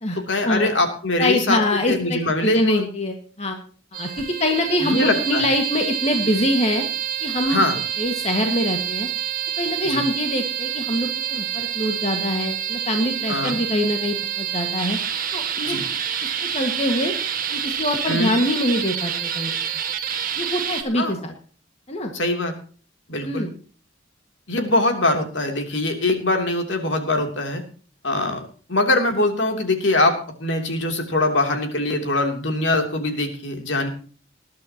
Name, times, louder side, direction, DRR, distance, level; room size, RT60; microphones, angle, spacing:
voice 1, 0.3-2.9 4.8-5.4 7.5-7.8 9.8-10.0 13.3-13.6 15.6-15.8 18.1-18.3 21.0-21.2 22.1-22.6 23.1-23.5 24.5-27.6 28.0-28.4 28.7-33.9, left 2 dB, 65° left, 4 dB, 3.0 m, -22 dB
voice 2, 1.2-3.6 3.9-6.9 7.2-7.6 8.0-9.1 9.6-15.0 15.3-15.8 16.5-17.1 17.5-19.6 20.4-21.3 21.9-22.1 23.2-23.5, left 1 dB, 35° left, 3 dB, 1.8 m, -24 dB
sound 1, 3.9-20.8, right 9 dB, 45° right, 1.8 m, -27 dB
20.5 x 11.5 x 2.9 m, 0.40 s
head